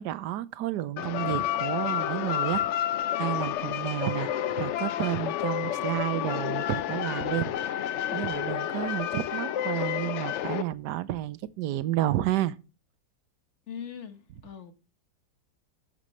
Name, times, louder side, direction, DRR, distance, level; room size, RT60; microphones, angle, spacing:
voice 1, 0.0-4.3 4.6-7.8 8.1-12.6, right 14 dB, 85° right, 1.2 m, -31 dB
sound 1, 1.0-10.6, left 11 dB, 75° left, 0.6 m, -30 dB
voice 2, 13.7-14.7, left 8 dB, 45° left, 1.3 m, -41 dB
11.5 x 7.5 x 3.1 m
omnidirectional pair, 1.8 m